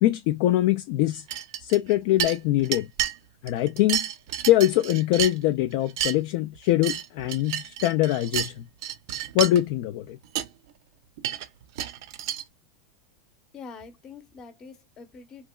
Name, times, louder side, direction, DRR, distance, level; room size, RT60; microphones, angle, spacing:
voice 1, 0.0-1.2 1.6-2.9 3.4-4.1 4.5-8.7 9.3-10.2, left 14 dB, 55° left, 0.3 m, -23 dB
sound 1, 1.3-3.1 3.5-5.6 5.9-6.1 6.6-8.5 8.8-9.6 10.1-10.2 10.4-10.5 11.2-12.4, right 11 dB, 65° right, 0.5 m, -30 dB
voice 2, 13.5-15.5, left 5 dB, 25° left, 0.8 m, -45 dB
3.2 x 2.8 x 2.2 m
supercardioid pair, 150°, 2 cm